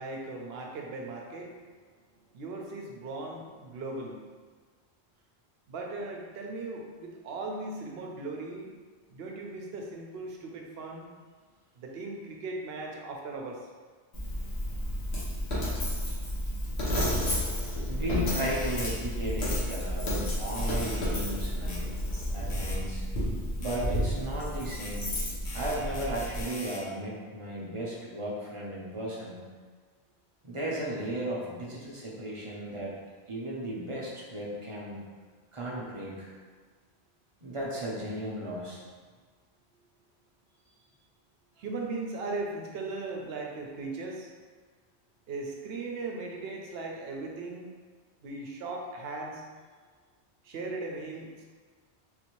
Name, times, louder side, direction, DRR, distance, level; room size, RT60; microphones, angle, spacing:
voice 1, 0.0-1.6 2.3-4.2 5.7-8.7 9.1-11.1 11.8-13.7 41.6-44.3 45.3-47.7 48.2-49.4 50.4-51.4, right 3 dB, 70° right, 0 dB, 0.8 m, -38 dB
Coin (dropping), 14.1-26.4, equal, 75° left, 1.2 m, -31 dB
voice 2, 17.9-21.9 22.3-23.0 23.6-25.1 25.5-29.4 30.4-32.9 33.3-35.0 35.5-36.3 37.4-38.8, right 1 dB, 35° right, -6 dB, 0.7 m, -35 dB
sound 1, 18.4-19.0 19.4-19.6 20.6-21.0 21.7-21.8 22.5-22.8 23.6-23.8 24.8-24.9 25.5-26.8, left 2 dB, 55° left, 0.8 m, -42 dB
3.9 x 2.6 x 3.0 m, 1.5 s
omnidirectional pair, 1.1 m